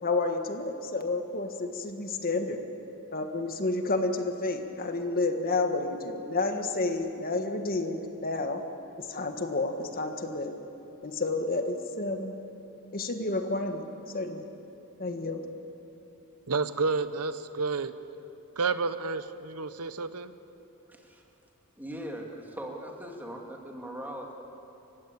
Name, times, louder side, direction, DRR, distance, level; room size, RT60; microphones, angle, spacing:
voice 1, 0.0-2.6 3.1-8.6 9.0-10.5 11.0-12.4 12.9-13.9 14.1-14.5 15.0-15.5, left 3 dB, 40° left, 6 dB, 1.6 m, -30 dB
voice 2, 16.5-17.9 18.6-20.3, right 4 dB, 85° right, 12 dB, 1.0 m, -30 dB
voice 3, 20.9-21.2 21.8-24.3, right 1 dB, 10° right, 0 dB, 2.5 m, -40 dB
29.0 x 16.0 x 8.6 m, 2.9 s
head